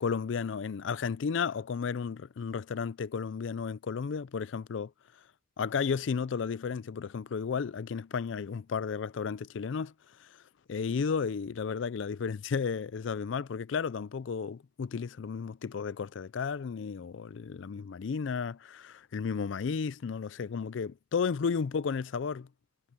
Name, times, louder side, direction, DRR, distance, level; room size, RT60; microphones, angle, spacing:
voice 1, 0.0-4.9 5.6-9.9 10.2-10.4 10.7-22.5, left 6 dB, 70° left, 0.4 m, -33 dB
head